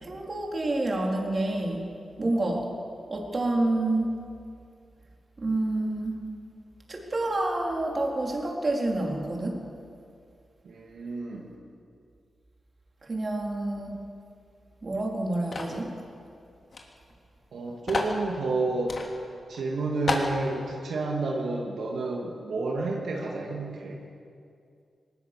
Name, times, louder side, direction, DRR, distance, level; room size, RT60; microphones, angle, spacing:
voice 1, 0.0-1.9 2.2-2.7 3.1-4.2 5.4-6.2 6.9-9.6 13.0-14.0 14.8-15.9, right 2 dB, 40° right, 0 dB, 3.7 m, -28 dB
voice 2, 10.6-11.5 17.5-19.0 19.5-24.0, right 3 dB, 80° right, -1 dB, 2.4 m, -30 dB
sound 1, 15.5-15.8 16.7-16.8 17.1-17.2 17.9-18.2 18.9-19.1 19.5-19.6 20.1-20.3, left 3 dB, 50° left, 2.9 m, -29 dB
20.0 x 19.0 x 6.8 m, 2.4 s
cardioid pair, 80°, 0 cm